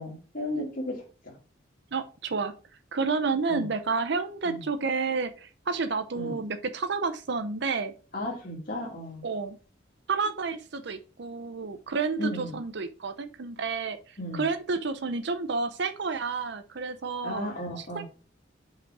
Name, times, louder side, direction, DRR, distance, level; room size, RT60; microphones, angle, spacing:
voice 1, 0.0-1.3 3.5-3.6 4.5-4.6 6.2-6.4 8.1-9.2 12.2-12.6 14.2-14.4 17.2-18.0, left 1 dB, 50° left, -3 dB, 2.1 m, -34 dB
voice 2, 1.9-2.5 2.9-7.9 9.2-9.6 10.1-17.5 17.8-18.0, right 4 dB, 65° right, 9 dB, 0.7 m, -30 dB
5.3 x 5.1 x 4.7 m, 0.36 s
head